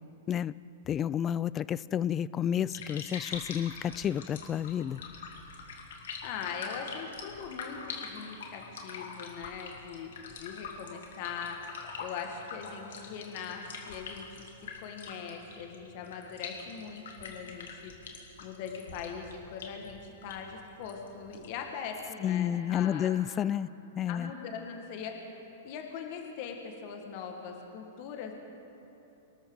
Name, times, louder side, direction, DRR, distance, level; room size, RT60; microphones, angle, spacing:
voice 1, 0.9-5.0 22.2-23.7 24.0-24.3, left 10 dB, 25° left, 19 dB, 0.3 m, -30 dB
sound 1, 2.6-21.7, left 5 dB, 75° left, 2.5 m, -44 dB
voice 2, 6.2-14.5 14.8-23.2 24.1-25.2 25.6-28.3, left 6 dB, 50° left, 3 dB, 1.8 m, -41 dB
24.5 x 13.0 x 4.0 m, 3.0 s
hypercardioid pair, 115°, 0 cm